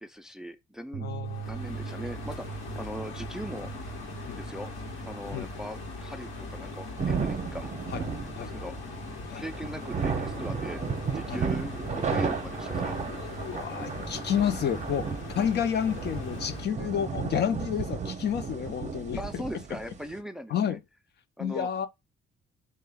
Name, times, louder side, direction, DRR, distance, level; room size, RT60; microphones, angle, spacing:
voice 1, 0.0-1.1 1.4-3.7 4.3-4.7 5.0-7.7 8.4-8.7 9.4-10.8 11.1-13.0 19.2-20.8 21.4-21.7, equal, 5° right, 0.4 m, -40 dB
sound 1, 0.9-7.2, right 7 dB, 70° right, 0.5 m, -42 dB
voice 2, 1.0-1.6 4.3-4.4 5.3-5.5 7.9-8.0 8.3-8.5 9.3-9.5 11.3-11.4 12.1-12.2 13.1-15.1 15.3-19.4 20.5-20.8 21.4-21.9, left 8 dB, 60° left, 0.6 m, -30 dB
sound 2, 1.2-16.7, left 2 dB, 85° left, 1.1 m, -40 dB
sound 3, 6.5-20.2, right 5 dB, 35° right, 0.7 m, -34 dB
3.7 x 2.3 x 3.4 m
cardioid pair, 90°, 20 cm